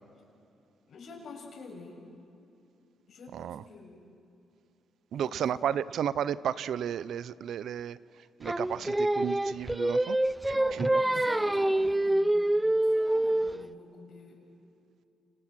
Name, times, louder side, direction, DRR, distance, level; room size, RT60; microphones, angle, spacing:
voice 1, 0.9-2.0 3.1-4.0 5.1-5.8 10.5-14.4, left 3 dB, 65° left, 1 dB, 6.9 m, -48 dB
voice 2, 5.1-8.0 8.4-10.2 10.5-10.9, right 9 dB, 75° right, 17 dB, 0.6 m, -33 dB
Singing, 8.4-13.6, right 1 dB, 10° right, 0.6 m, -26 dB
29.5 x 28.5 x 6.2 m, 2.7 s
cardioid pair, 95°, 0 cm